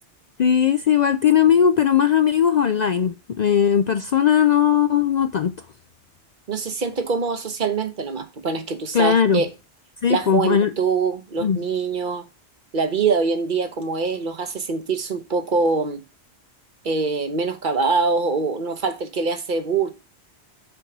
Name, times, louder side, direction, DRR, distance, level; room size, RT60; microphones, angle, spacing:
voice 1, 0.4-5.5 8.9-9.4 10.0-10.7 11.4-11.6, left 8 dB, 55° left, 0.5 m, -18 dB
voice 2, 6.5-9.5 10.1-12.2 12.7-16.0 16.8-19.9, right 4 dB, 50° right, 1.0 m, -24 dB
6.9 x 4.6 x 5.9 m
omnidirectional pair, 1.1 m